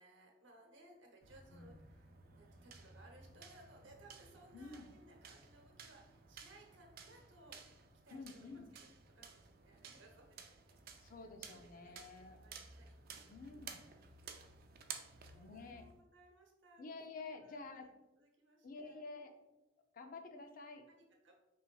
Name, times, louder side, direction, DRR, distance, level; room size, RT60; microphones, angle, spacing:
voice 1, 0.0-7.6 8.0-8.9 9.1-12.0 12.3-13.3 13.6-14.0 14.4-14.6 15.0-16.8 17.3-17.9 18.2-19.0 20.9-21.4, right 1 dB, 75° right, 1 dB, 0.9 m, -63 dB
sound 1, 1.2-16.0, right 6 dB, 50° right, 0.4 m, -55 dB
voice 2, 4.5-4.9 8.1-8.7 11.0-12.4 13.3-13.8 15.3-15.9 16.8-17.9 18.6-19.3 19.9-20.8, left 3 dB, 45° left, 5 dB, 0.5 m, -50 dB
5.3 x 3.3 x 2.3 m, 0.96 s
head